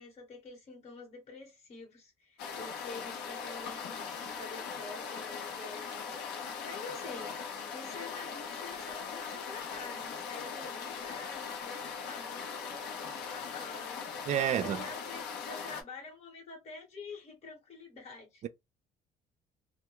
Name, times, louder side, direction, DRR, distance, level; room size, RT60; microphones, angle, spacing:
voice 1, 0.0-18.4, left 4 dB, 40° left, 1.1 m, -48 dB
sound 1, 2.4-15.8, left 6 dB, 80° left, 0.7 m, -40 dB
voice 2, 14.3-14.8 18.4-18.5, right 10 dB, 45° right, 0.4 m, -29 dB
2.2 x 2.1 x 2.9 m
cardioid pair, 110°, 17 cm